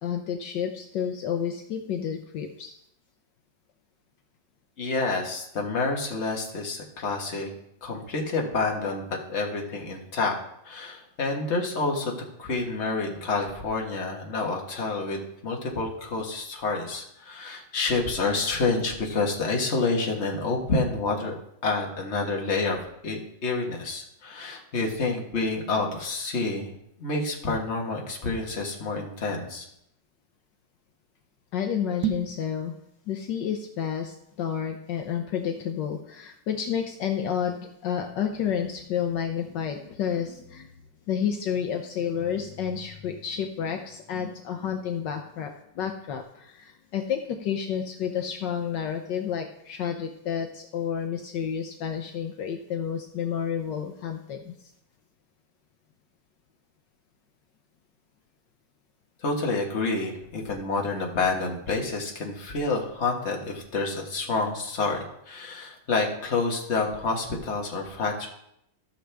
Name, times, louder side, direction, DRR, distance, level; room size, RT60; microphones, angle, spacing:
voice 1, 0.0-2.7 31.5-32.7 33.1-40.7 41.1-45.5 45.8-54.5, left 8 dB, 70° left, 4 dB, 1.4 m, -30 dB
voice 2, 4.8-7.5 7.8-10.4 10.6-21.3 21.6-26.7 27.0-29.6 59.2-68.3, left 3 dB, 40° left, 0 dB, 1.7 m, -28 dB
sound 1, 31.9-32.4, right 9 dB, 70° right, 1.3 m, -29 dB
14.5 x 6.4 x 3.4 m, 0.77 s
omnidirectional pair, 2.0 m